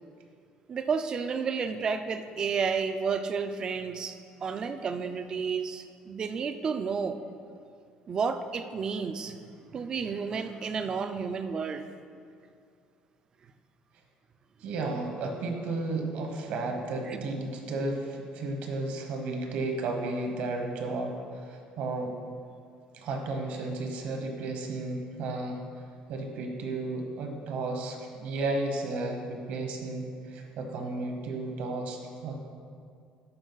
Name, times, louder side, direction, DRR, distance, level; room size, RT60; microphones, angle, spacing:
voice 1, 0.7-7.2 8.1-9.4 9.7-11.9 17.1-17.3, right 5 dB, 30° right, 9 dB, 0.4 m, -31 dB
voice 2, 14.6-22.1 22.9-25.6 26.1-32.3, right 2 dB, 60° right, 3 dB, 1.0 m, -33 dB
11.0 x 4.5 x 3.9 m, 2.4 s
cardioid pair, 165°, 3 cm